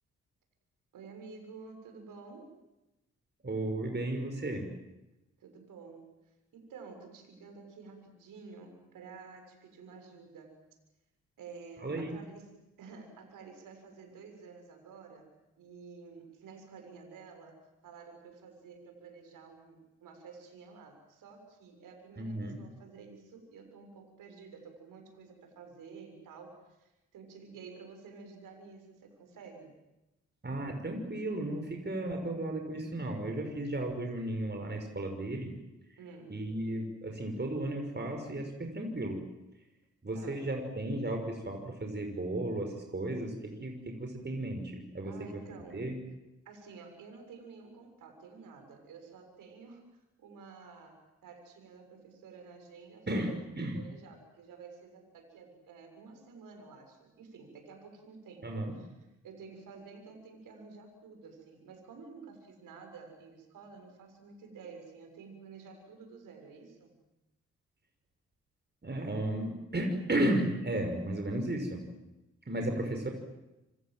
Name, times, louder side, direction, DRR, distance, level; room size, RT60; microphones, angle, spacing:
voice 1, 0.9-2.5 5.4-6.1 6.5-10.6 11.4-29.7 36.0-36.3 40.1-40.4 45.0-45.8 46.5-49.9 50.2-53.4 53.7-58.9 59.2-67.0, right 5 dB, 75° right, 5 dB, 6.9 m, -51 dB
voice 2, 3.4-4.7 11.8-12.2 22.2-22.6 30.4-35.5 35.9-36.0 36.3-39.2 40.0-46.0 53.1-53.8 58.4-58.7 68.8-71.8 72.5-73.1, right 1 dB, 30° right, 3 dB, 6.1 m, -34 dB
27.0 x 26.0 x 7.9 m, 0.97 s
hypercardioid pair, 40°, 33 cm